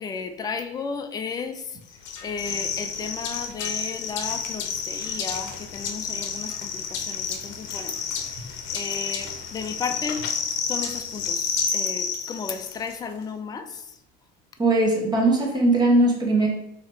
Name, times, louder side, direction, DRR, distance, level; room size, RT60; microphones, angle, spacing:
voice 1, 0.0-8.0 8.3-8.4 8.7-10.3 10.6-14.0, left 5 dB, 20° left, 6 dB, 0.4 m, -34 dB
sound 1, 2.0-12.9, left 6 dB, 65° left, 0.8 m, -30 dB
voice 2, 14.6-16.5, right 2 dB, 20° right, -1 dB, 1.3 m, -19 dB
4.0 x 2.9 x 4.3 m, 0.80 s
supercardioid pair, 110°, 20 cm